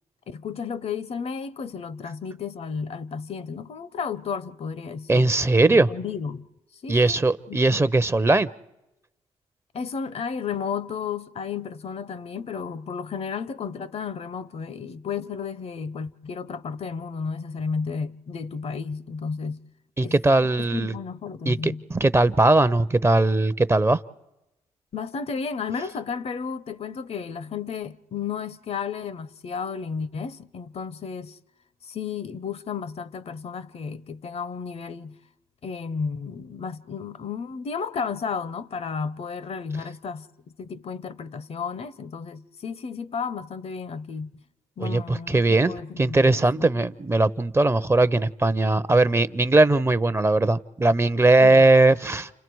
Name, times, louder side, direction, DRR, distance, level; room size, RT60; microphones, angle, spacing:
voice 1, 0.3-6.4 6.8-7.2 7.5-7.8 9.7-19.6 20.0-20.1 20.4-21.8 24.9-31.4 31.8-35.2 35.6-40.3 40.6-44.3 44.8-46.7 51.4-51.6, left 6 dB, 55° left, 0.8 m, -33 dB
voice 2, 5.1-5.9 6.9-8.5 20.0-20.9 21.5-24.0 44.8-52.3, right 2 dB, 20° right, 0.7 m, -20 dB
30.0 x 26.5 x 4.7 m
cardioid pair, 70°, 13 cm